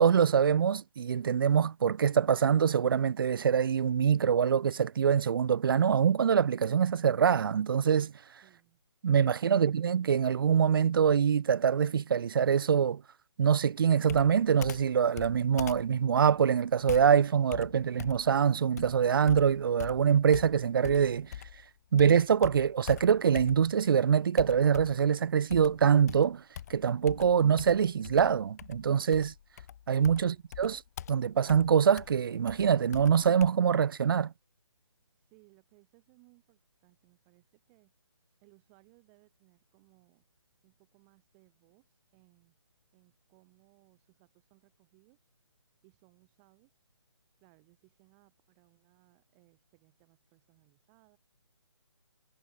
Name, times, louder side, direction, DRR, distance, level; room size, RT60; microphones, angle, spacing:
voice 1, 0.0-8.1 9.0-13.0 13.4-21.3 21.9-26.4 26.7-29.3 29.9-30.8 31.1-34.3, right 7 dB, 50° right, 0.5 m, -24 dB
voice 2, 8.4-8.8 30.1-30.5 35.2-37.9 38.4-40.2 40.6-42.6 42.9-45.3 45.8-46.8 47.4-51.2, right 36 dB, 20° right, 6.3 m, -65 dB
Computer keyboard, 14.1-21.7 22.0-23.9 24.4-25.1 25.5-33.5, left 10 dB, 35° left, 0.6 m, -44 dB
figure-of-eight pair, 150°, 15 cm